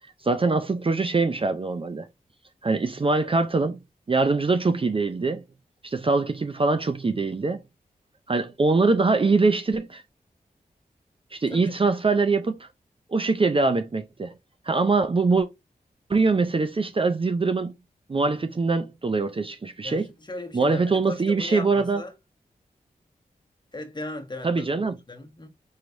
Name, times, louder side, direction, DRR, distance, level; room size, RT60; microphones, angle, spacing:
voice 1, 0.2-2.1 2.6-3.8 4.1-5.4 5.8-7.6 8.3-10.0 11.3-12.6 13.1-14.3 14.7-15.5 16.1-17.7 18.1-20.1 20.5-22.0 24.4-24.9, right 3 dB, 35° right, 0.5 m, -23 dB
voice 2, 19.8-22.1 23.7-24.6 25.1-25.5, left 2 dB, 30° left, 1.2 m, -37 dB
4.7 x 3.0 x 2.6 m
cardioid pair, 45°, 16 cm